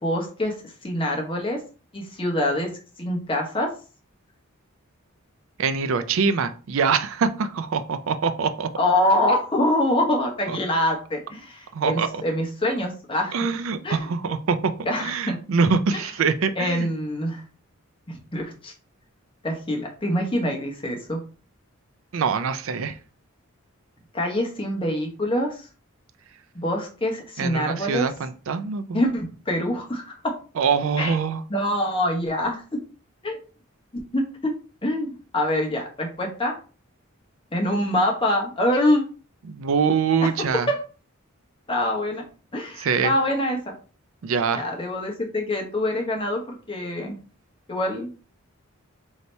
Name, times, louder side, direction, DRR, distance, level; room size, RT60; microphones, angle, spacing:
voice 1, 0.0-0.5 0.8-1.6 1.9-2.7 3.0-3.7 8.8-13.3 13.8-14.1 14.9-15.3 16.6-17.4 18.1-18.7 19.4-21.2 24.1-25.7 26.5-28.1 28.9-30.2 31.0-31.1 31.5-32.6 33.2-33.4 34.1-34.5 34.8-36.5 37.5-39.0 41.7-42.2 42.5-43.7 44.5-47.2 47.7-48.1, left 1 dB, 25° left, 1 dB, 0.9 m, -25 dB
voice 2, 5.6-8.7 10.5-10.6 11.7-12.2 13.3-14.7 15.0-16.9 22.1-23.0 27.4-29.0 30.6-31.4 39.4-40.7 42.8-43.1 44.2-44.6, right 5 dB, 70° right, 11 dB, 0.4 m, -24 dB
3.2 x 2.7 x 4.2 m, 0.36 s
head